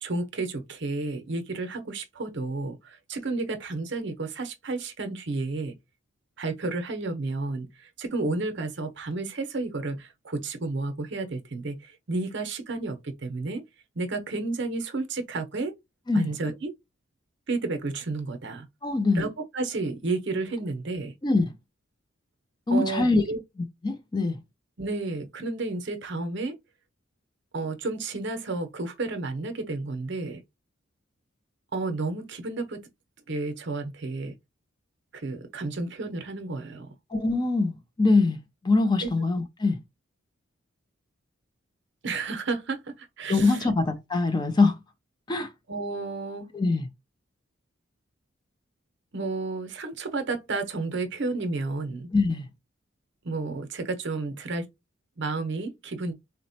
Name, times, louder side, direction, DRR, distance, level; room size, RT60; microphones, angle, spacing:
voice 1, 0.0-5.7 6.4-13.6 14.0-15.8 16.1-16.7 17.5-18.7 19.1-19.3 19.5-21.1 22.7-23.4 24.8-26.6 27.5-30.4 31.7-32.8 33.3-34.3 35.1-36.9 39.0-39.1 42.0-43.7 45.7-46.5 49.1-52.1 53.2-54.6 55.2-56.1, right 3 dB, 55° right, 0.7 m, -31 dB
voice 2, 18.8-19.2 21.2-21.5 22.7-23.2 23.8-24.4 37.1-38.4 38.6-39.8 43.3-44.8 45.3-45.5 46.5-46.9 52.1-52.5, left 3 dB, 20° left, 0.4 m, -23 dB
4.0 x 2.1 x 2.7 m
head